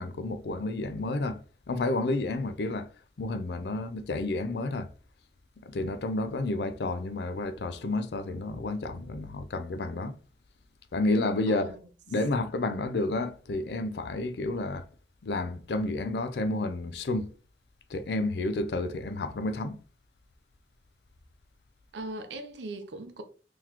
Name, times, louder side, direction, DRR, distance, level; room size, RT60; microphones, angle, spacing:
voice 1, 0.0-1.4 1.7-2.9 3.2-4.9 5.6-10.2 10.9-11.7 12.1-14.9 15.2-17.3 17.9-19.8, left 2 dB, 65° left, 0.4 m, -30 dB
voice 2, 11.5-11.9 21.9-23.2, right 2 dB, 85° right, 0.6 m, -39 dB
3.9 x 3.0 x 2.8 m
head